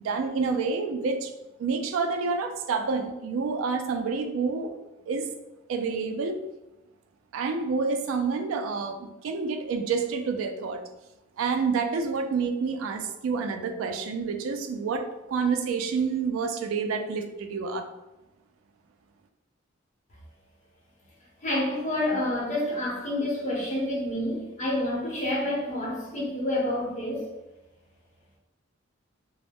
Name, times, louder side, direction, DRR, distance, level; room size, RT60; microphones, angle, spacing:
voice 1, 0.0-1.3 1.6-4.7 5.1-5.3 5.7-6.4 7.3-10.8 11.4-17.9, right 5 dB, 80° right, 6 dB, 0.3 m, -28 dB
voice 2, 21.4-27.2, left 1 dB, 35° left, -5 dB, 0.8 m, -28 dB
2.3 x 2.0 x 3.4 m, 0.99 s
head